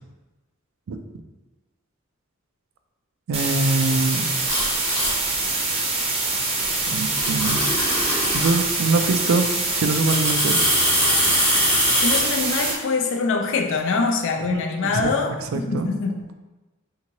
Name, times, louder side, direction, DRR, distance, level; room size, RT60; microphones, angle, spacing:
sound 1, 3.3-12.7, right 3 dB, 30° right, 0.6 m, -25 dB
voice 1, 3.3-4.3 6.9-7.6 8.3-10.7 14.5-15.1 15.5-15.9, right 3 dB, 75° right, 7 dB, 0.4 m, -24 dB
sound 2, 4.5-5.1 6.6-6.7 7.1-8.6 10.0-12.2, equal, 5° left, 0.8 m, -22 dB
voice 2, 12.0-16.2, left 4 dB, 65° left, 4 dB, 0.4 m, -24 dB
3.5 x 2.8 x 2.9 m, 1.1 s
head